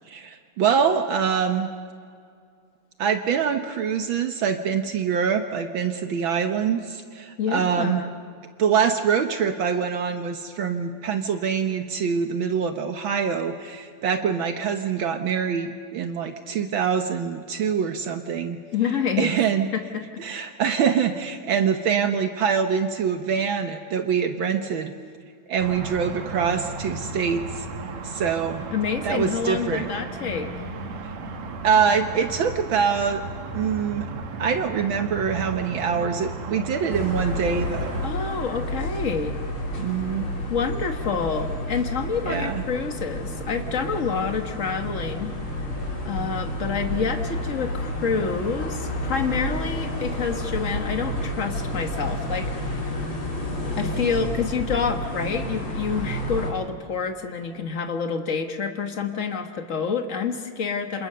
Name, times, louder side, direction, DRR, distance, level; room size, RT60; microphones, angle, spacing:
voice 1, 0.1-1.7 3.0-8.0 8.6-18.6 19.2-19.7 20.2-24.9 25.5-27.7 28.0-28.7 29.0-29.9 31.0-31.1 31.6-33.2 33.5-34.1 34.4-38.0 39.8-40.3 42.2-42.6, right 7 dB, 85° right, 6 dB, 1.1 m, -24 dB
voice 2, 7.4-8.1 18.7-19.3 19.7-20.0 28.7-30.5 38.0-39.4 40.5-45.3 46.0-53.2 53.8-61.1, left 6 dB, 65° left, 5 dB, 0.7 m, -28 dB
sound 1, 25.6-38.1, right 3 dB, 60° right, 2.8 m, -35 dB
sound 2, 36.9-56.5, left 1 dB, 40° left, 4.8 m, -30 dB
28.5 x 28.0 x 6.8 m, 2.2 s
omnidirectional pair, 3.7 m